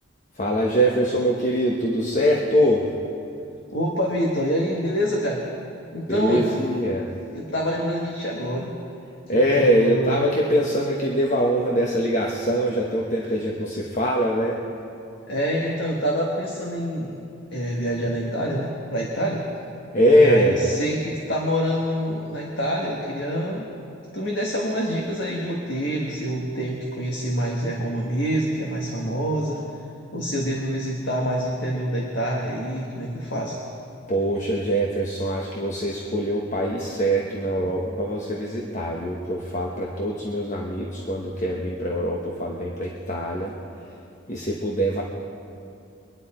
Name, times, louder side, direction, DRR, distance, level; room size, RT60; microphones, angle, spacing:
voice 1, 0.4-2.9 6.1-7.1 9.3-14.6 19.9-20.8 34.1-43.5 44.3-45.0, equal, 35° left, -2 dB, 1.1 m, -23 dB
voice 2, 3.7-5.5 5.9-6.5 7.3-8.7 9.3-10.3 15.3-17.2 17.5-19.4 20.1-23.7 24.1-29.6 30.1-33.6, equal, 65° left, -2 dB, 1.6 m, -26 dB
24.0 x 9.8 x 4.3 m, 2.6 s
head